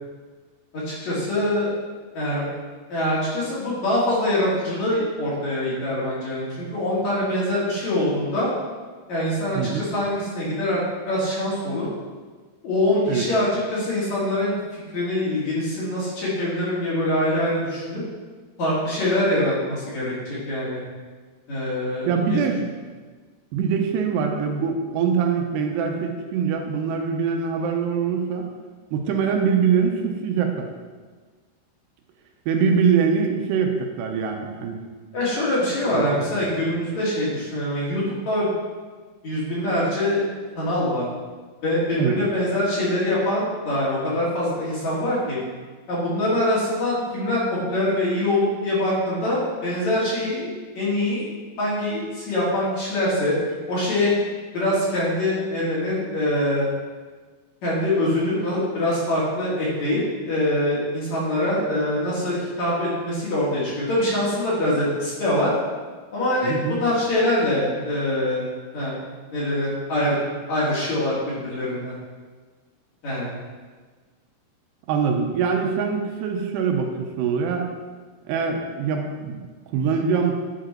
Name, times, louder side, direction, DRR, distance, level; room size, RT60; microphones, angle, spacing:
voice 1, 0.7-1.7 2.1-2.5 2.9-8.5 9.1-10.8 11.1-11.9 12.6-18.0 18.6-20.8 21.5-22.4 35.1-38.5 39.2-40.2 40.6-41.0 41.6-45.4 45.9-50.5 50.7-51.3 51.6-53.3 53.7-54.1 54.5-56.7 57.6-65.5 66.1-68.5 68.7-69.0 69.3-70.2 70.5-71.9 73.0-73.3, left 1 dB, 50° left, -8 dB, 3.2 m, -24 dB
voice 2, 22.1-22.6 23.5-28.5 28.9-30.7 32.5-34.8 35.9-36.2 42.0-42.2 66.4-66.8 74.9-77.7 78.3-79.4 79.7-80.4, right 6 dB, 85° right, 3 dB, 2.9 m, -23 dB
11.0 x 5.0 x 4.4 m, 1.4 s
omnidirectional pair, 4.8 m